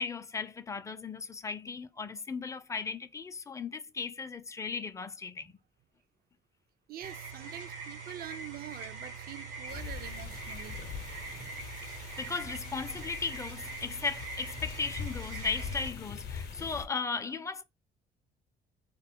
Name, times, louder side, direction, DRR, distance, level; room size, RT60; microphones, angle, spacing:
voice 1, 0.0-5.5 12.2-17.6, left 5 dB, 15° left, 0.4 m, -36 dB
voice 2, 6.9-10.8, right 11 dB, 55° right, 0.4 m, -45 dB
sound 1, 7.0-15.9, right 4 dB, 85° right, 0.9 m, -43 dB
sound 2, 9.7-16.9, left 6 dB, 55° left, 0.7 m, -42 dB
2.2 x 2.1 x 3.5 m
supercardioid pair, 75°, 19 cm